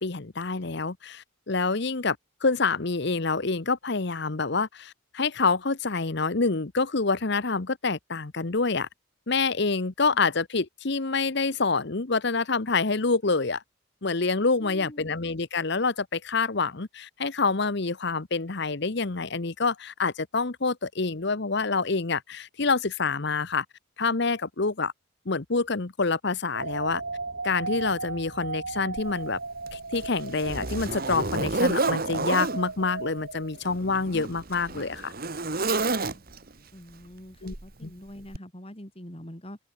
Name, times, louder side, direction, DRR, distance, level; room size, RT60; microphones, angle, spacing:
voice 1, 0.0-2.2 2.4-8.9 9.3-13.6 14.0-23.6 24.0-24.9 25.3-27.0 27.4-29.4 29.7-35.1 37.4-37.6 37.8-37.9, left 4 dB, 55° left, 1.0 m, -27 dB
voice 2, 14.6-15.1 36.0-36.2 36.7-39.6, equal, 25° left, 3.7 m, -44 dB
sound 1, 26.5-33.9, right 3 dB, 60° right, 2.5 m, -36 dB
Zipper (clothing), 29.0-29.1 29.7-32.6 33.6-36.5 37.5-37.7 38.3-38.4, right 3 dB, 45° right, 1.8 m, -29 dB
head